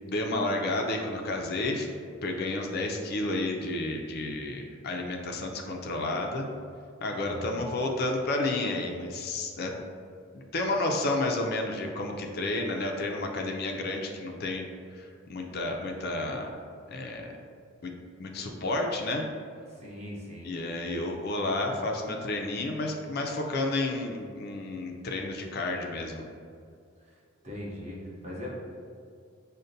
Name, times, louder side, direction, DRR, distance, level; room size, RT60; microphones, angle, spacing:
voice 1, 0.0-1.9 2.2-6.5 7.0-9.7 10.3-14.7 14.9-16.6 16.9-17.4 17.8-17.9 18.2-19.3 20.4-26.2, left 2 dB, 55° left, 2 dB, 0.4 m, -31 dB
voice 2, 7.1-7.6 19.7-20.6 27.0-27.2 27.4-28.6, left 1 dB, 35° right, -5 dB, 0.9 m, -40 dB
6.4 x 2.1 x 2.6 m, 2.3 s
head